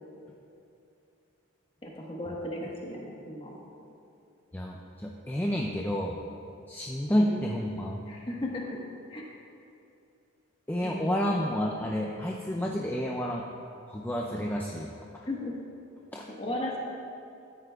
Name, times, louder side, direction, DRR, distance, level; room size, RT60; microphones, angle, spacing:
voice 1, 1.8-3.6 7.1-7.4 8.1-8.8 9.1-9.3 10.8-11.4 12.6-12.9 15.3-15.5 16.3-16.8, left 1 dB, 25° left, -2 dB, 1.3 m, -36 dB
voice 2, 4.5-6.2 6.7-8.0 10.7-13.4 13.9-15.3 16.1-16.3, equal, 10° left, -1 dB, 0.4 m, -30 dB
14.0 x 9.6 x 2.3 m, 2.7 s
head